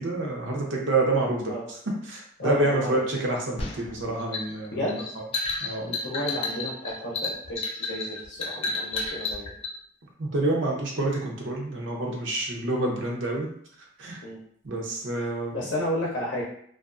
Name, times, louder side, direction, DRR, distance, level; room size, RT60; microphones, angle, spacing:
voice 1, 0.0-1.8 2.0-4.8 5.6-5.9 10.2-13.5 14.0-14.2 14.6-15.6, right 2 dB, 85° right, -1 dB, 0.6 m, -28 dB
voice 2, 2.4-3.0 4.7-5.0 5.8-9.5 14.2-14.4 15.5-16.4, left 1 dB, 75° left, -4 dB, 0.6 m, -32 dB
sound 1, 3.6-9.7, left 3 dB, 30° left, 0.4 m, -31 dB
2.4 x 2.3 x 2.4 m, 0.67 s
head